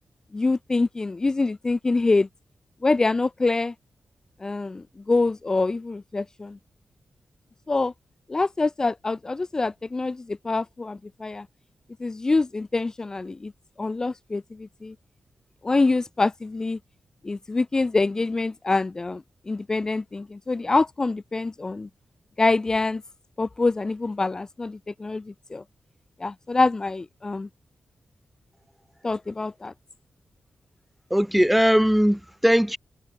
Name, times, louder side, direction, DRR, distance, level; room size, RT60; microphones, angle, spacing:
voice 1, 0.3-2.3 2.8-3.7 4.4-6.6 7.7-7.9 8.3-11.5 12.0-13.5 13.8-14.9 15.6-16.8 17.2-21.9 22.4-23.0 23.4-25.6 26.2-27.5 29.0-29.7, left 3 dB, 25° left, 1.0 m, -25 dB
voice 2, 31.1-32.8, equal, ahead, 2.2 m, -19 dB
wide cardioid pair, 150°, 3 cm